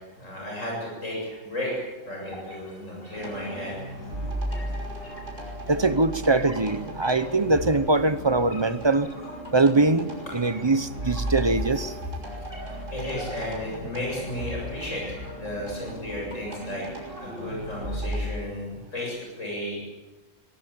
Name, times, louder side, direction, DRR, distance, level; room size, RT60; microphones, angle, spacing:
voice 1, 0.0-3.8 12.6-16.8 17.2-19.8, left 1 dB, 80° left, -2 dB, 7.8 m, -34 dB
sound 1, 2.3-18.3, left 1 dB, 50° left, 7.6 m, -44 dB
sound 2, 3.1-18.2, right 1 dB, 75° right, 5.9 m, -36 dB
voice 2, 5.7-9.1 9.5-11.9, right 3 dB, 25° right, 13 dB, 0.8 m, -22 dB
24.5 x 18.0 x 8.7 m, 1.2 s
omnidirectional pair, 1.3 m